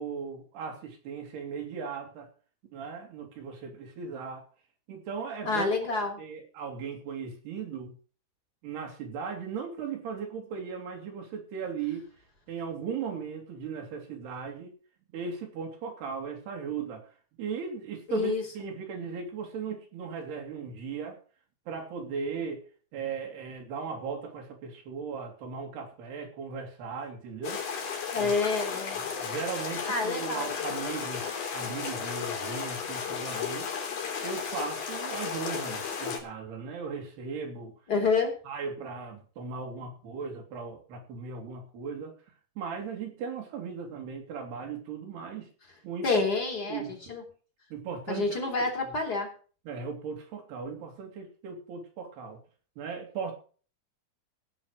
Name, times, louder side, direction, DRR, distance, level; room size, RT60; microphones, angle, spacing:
voice 1, 0.0-2.3 2.7-4.4 4.9-5.7 6.2-8.0 8.6-12.1 12.5-14.8 15.1-17.1 17.4-21.2 21.7-22.6 22.9-27.6 28.2-28.3 29.0-33.7 34.2-37.7 38.5-42.1 42.6-45.5 45.8-46.2 46.6-47.2 47.7-48.5 48.8-48.9 49.7-52.4 52.8-53.3, right 5 dB, 90° right, 1 dB, 4.6 m, -37 dB
voice 2, 5.4-6.2 18.1-18.4 28.1-29.0 29.9-30.5 37.9-38.4 46.0-47.2 48.1-49.3, left 4 dB, 25° left, 3 dB, 2.8 m, -28 dB
sound 1, 27.4-36.2, left 6 dB, 70° left, 4.9 m, -34 dB
17.0 x 6.3 x 6.5 m, 0.40 s
omnidirectional pair, 4.5 m